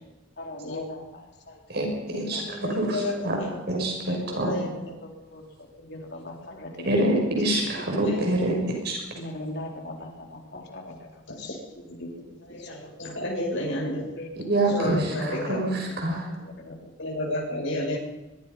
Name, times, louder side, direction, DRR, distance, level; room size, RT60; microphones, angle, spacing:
voice 1, 0.4-2.4 2.8-3.0 3.5-3.6 4.5-6.9 7.5-7.8 9.2-11.5 11.9-12.7 13.8-14.3 15.2-15.6 16.1-17.3 17.6-17.7, left 1 dB, 55° left, 1 dB, 4.1 m, -41 dB
voice 2, 1.7-3.4 3.7-4.5 6.8-9.0 14.5-16.3, right 1 dB, 55° right, 0 dB, 6.6 m, -26 dB
voice 3, 2.4-3.5 4.1-4.7 8.0-8.2 11.3-11.6 12.5-14.0 14.7-15.6 17.0-18.0, left 1 dB, 75° left, -2 dB, 7.1 m, -31 dB
24.0 x 22.5 x 5.6 m, 1.1 s
head